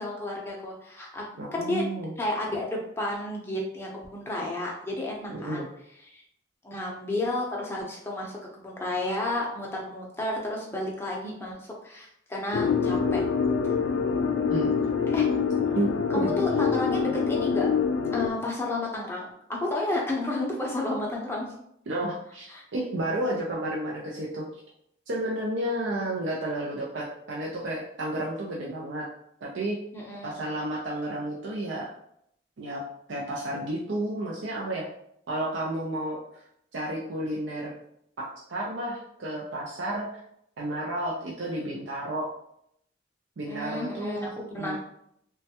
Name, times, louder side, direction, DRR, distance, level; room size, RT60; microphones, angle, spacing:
voice 1, 0.0-1.3 1.5-1.9 2.2-5.7 6.1-6.2 6.6-13.2 15.1-15.3 16.1-17.7 18.1-21.5 22.5-22.6 29.9-30.4 43.5-44.8, left 2 dB, 15° left, -2 dB, 0.6 m, -31 dB
voice 2, 1.4-2.1 5.3-5.7 14.5-14.8 15.7-16.3 21.9-24.5 25.1-29.1 29.4-29.8 30.2-31.9 32.6-32.8 33.1-34.9 35.3-36.4 36.7-37.7 38.2-40.2 40.6-42.3 43.4-44.3 44.5-44.8, right 1 dB, 80° right, -4 dB, 0.5 m, -31 dB
sound 1, 12.5-18.3, left 6 dB, 90° left, 0.3 m, -25 dB
3.2 x 2.2 x 2.8 m, 0.73 s
head